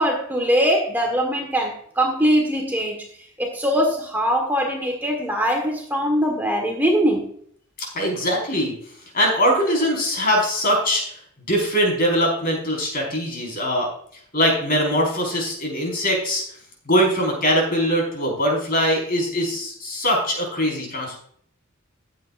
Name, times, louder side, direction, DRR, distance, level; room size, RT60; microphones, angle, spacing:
voice 1, 0.0-3.0 3.4-7.3, equal, 10° right, 1 dB, 1.5 m, -21 dB
voice 2, 7.9-8.7 9.1-11.0 11.5-13.9 14.3-16.4 16.8-21.2, equal, 45° left, -1 dB, 5.0 m, -21 dB
14.5 x 9.8 x 2.6 m, 0.62 s
head